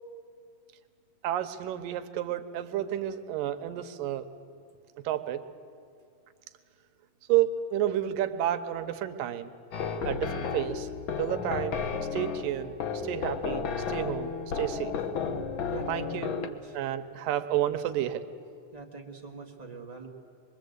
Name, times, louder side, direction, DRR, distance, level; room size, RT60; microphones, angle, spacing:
voice 1, 1.2-4.2 5.0-5.4 7.3-9.5 10.0-10.9 11.2-11.8 12.1-12.7 13.0-14.3 14.6-14.9 15.9-16.3 16.7-18.2, right 12 dB, 85° right, 9 dB, 2.5 m, -30 dB
sound 1, 9.7-16.5, left 6 dB, 80° left, 1.1 m, -33 dB
voice 2, 15.7-16.8 18.7-20.1, right 3 dB, 30° right, 0 dB, 0.7 m, -43 dB
24.5 x 22.5 x 8.0 m, 2.3 s
omnidirectional pair, 3.9 m